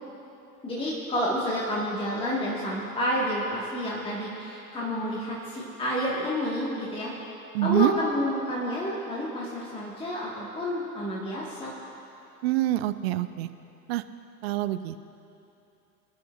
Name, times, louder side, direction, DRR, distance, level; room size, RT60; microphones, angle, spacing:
voice 1, 0.6-7.1 7.6-11.7, equal, 10° left, -5 dB, 1.6 m, -29 dB
voice 2, 7.5-7.9 12.4-13.5 13.9-14.0 14.4-15.1, right 15 dB, 45° right, 12 dB, 0.5 m, -25 dB
26.0 x 10.0 x 2.5 m, 2.8 s
figure-of-eight pair, 90°, 47 cm